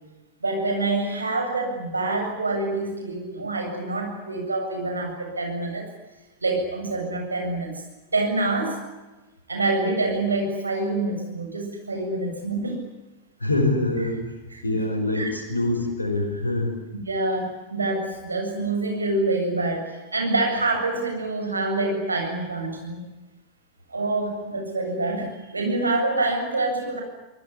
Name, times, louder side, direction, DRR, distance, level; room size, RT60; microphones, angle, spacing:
voice 1, 0.4-5.9 6.4-7.7 8.1-8.8 9.5-12.8 14.5-14.7 15.1-15.3 17.1-23.0 23.9-27.0, right 2 dB, 80° right, 3 dB, 7.5 m, -26 dB
voice 2, 13.4-14.3 14.6-16.8, left 2 dB, 80° left, 1 dB, 5.0 m, -25 dB
25.0 x 20.0 x 9.8 m, 1.1 s
figure-of-eight pair, 90°, 0 cm